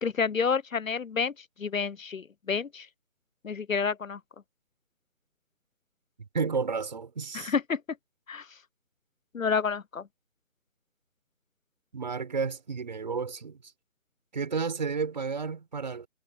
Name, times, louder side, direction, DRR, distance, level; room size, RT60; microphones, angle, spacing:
voice 1, 0.0-1.3 1.6-2.9 3.4-4.2 7.3-7.8 8.3-8.4 9.3-10.0, left 5 dB, 70° left, 0.8 m, -29 dB
voice 2, 6.2-7.6 11.9-13.6 14.3-16.1, right 5 dB, 30° right, 6.7 m, -32 dB
figure-of-eight pair, 170°, 41 cm